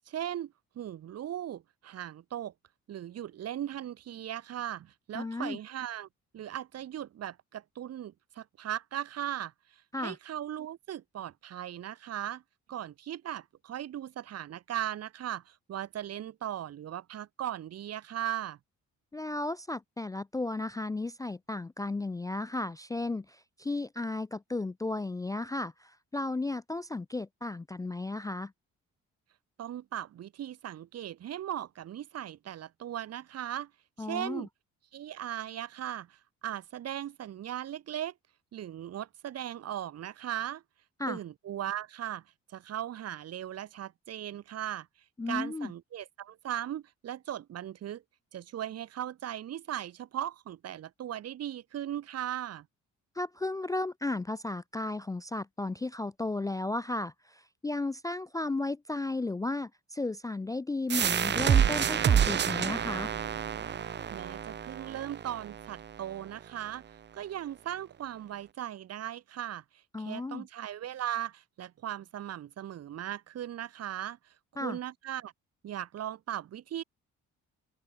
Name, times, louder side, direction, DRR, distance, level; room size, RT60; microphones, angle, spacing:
voice 1, 0.1-2.5 2.9-6.1 6.3-12.4 12.7-18.6 29.6-33.7 34.0-34.5 34.9-38.1 38.5-40.6 41.1-42.2 42.5-44.9 45.3-48.0 48.3-52.7 64.1-66.8 67.1-69.6 70.0-74.2 74.6-75.3 75.6-76.8, right 11 dB, 55° right, 0.9 m, -38 dB
voice 2, 5.1-5.6 9.9-10.2 19.1-28.5 34.0-34.5 41.0-41.2 45.2-45.7 53.2-63.1 69.9-70.5 74.6-74.8, left 2 dB, 10° left, 0.3 m, -34 dB
sound 1, 60.9-66.3, right 8 dB, 35° right, 0.6 m, -28 dB
open air
cardioid pair, 90°, 30 cm